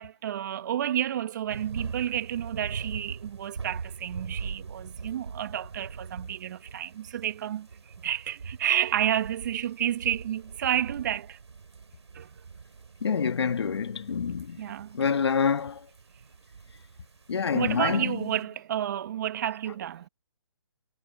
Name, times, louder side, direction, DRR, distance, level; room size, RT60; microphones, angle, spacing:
voice 1, 0.0-7.7 8.0-11.4 12.1-12.3 14.6-15.0 17.5-20.1, right 11 dB, 40° right, 1.9 m, -30 dB
sound 1, 1.5-18.4, right 5 dB, 65° right, 7.1 m, -42 dB
voice 2, 13.0-14.6 14.9-15.8 17.3-18.3, left 6 dB, 60° left, 1.9 m, -27 dB
figure-of-eight pair, 145°, 15 cm